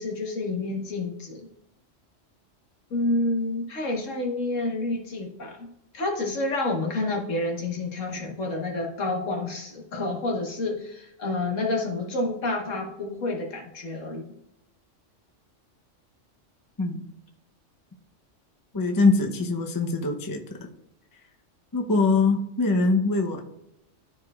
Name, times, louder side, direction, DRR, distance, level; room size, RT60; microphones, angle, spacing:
voice 1, 0.0-1.5 2.9-5.7 5.9-14.3, left 2 dB, 80° left, 1 dB, 1.7 m, -29 dB
voice 2, 18.7-20.4 21.7-23.4, left 3 dB, 20° left, 3 dB, 0.7 m, -23 dB
13.0 x 4.9 x 2.4 m, 0.85 s
omnidirectional pair, 1.3 m